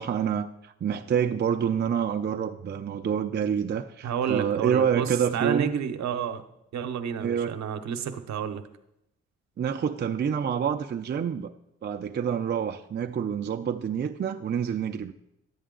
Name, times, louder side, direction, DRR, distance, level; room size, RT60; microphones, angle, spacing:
voice 1, 0.0-5.7 7.2-7.6 9.6-11.5 11.8-15.1, right 8 dB, 35° right, 6 dB, 0.5 m, -27 dB
voice 2, 4.0-6.4 6.7-8.6, right 8 dB, 70° right, 8 dB, 0.8 m, -30 dB
11.0 x 7.9 x 3.8 m, 0.82 s
cardioid pair, 80°, 29 cm